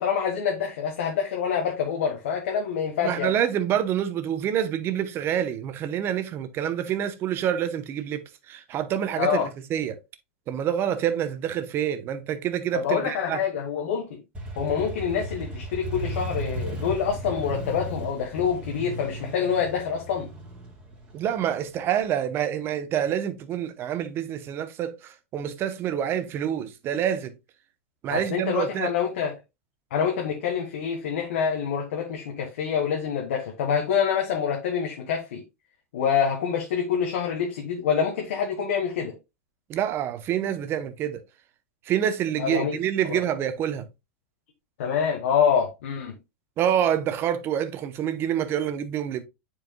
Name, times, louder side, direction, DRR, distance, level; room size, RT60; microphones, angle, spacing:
voice 1, 0.0-3.3 9.2-9.5 12.7-14.2 14.5-20.3 28.1-29.3 29.9-35.4 35.9-39.1 42.4-42.8 43.1-43.2 44.8-46.2, left 7 dB, 75° left, 1.3 m, -26 dB
voice 2, 3.0-10.0 10.5-13.4 21.1-27.3 28.0-28.9 39.7-41.2 41.9-43.9 46.6-49.3, right 10 dB, 35° right, 0.8 m, -27 dB
Motorcycle, 14.3-22.0, right 1 dB, 15° right, 2.2 m, -35 dB
9.1 x 4.7 x 2.2 m
supercardioid pair, 130°, 7 cm